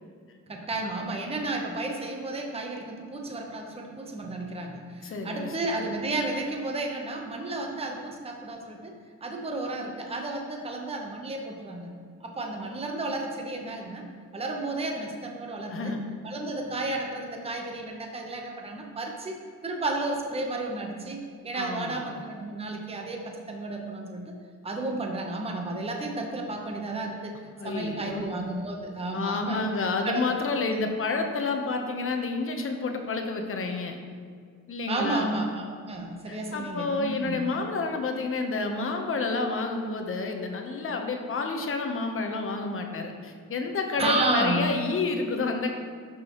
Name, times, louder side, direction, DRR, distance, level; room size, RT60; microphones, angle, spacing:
voice 1, 0.5-8.9 9.2-11.9 12.2-15.9 16.2-24.4 24.6-27.3 27.6-30.2 30.5-30.6 34.9-37.4 44.0-44.6, right 2 dB, 20° right, 2 dB, 0.9 m, -32 dB
voice 2, 5.0-5.6 15.7-16.0 21.5-22.2 27.5-28.3 29.1-34.0 34.7-35.4 36.3-45.7, left 3 dB, 45° left, 4 dB, 0.9 m, -29 dB
12.0 x 6.1 x 3.0 m, 2.1 s
cardioid pair, 130°, 31 cm